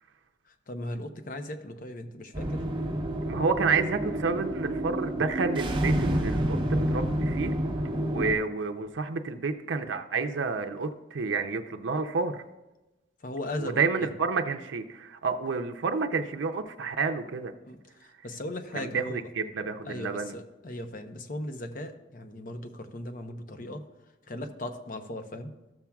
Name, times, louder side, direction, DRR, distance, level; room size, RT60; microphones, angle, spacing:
voice 1, 0.5-2.6 8.1-8.3 13.2-14.1 17.6-19.2 19.8-23.8 24.3-25.5, left 1 dB, 45° left, 7 dB, 0.7 m, -38 dB
sound 1, 2.3-8.3, right 1 dB, 25° right, 1.0 m, -29 dB
voice 2, 3.3-7.5 7.9-12.4 13.6-17.5 18.7-20.3, right 4 dB, 80° right, 5 dB, 0.5 m, -29 dB
13.5 x 7.1 x 2.3 m, 1.0 s
head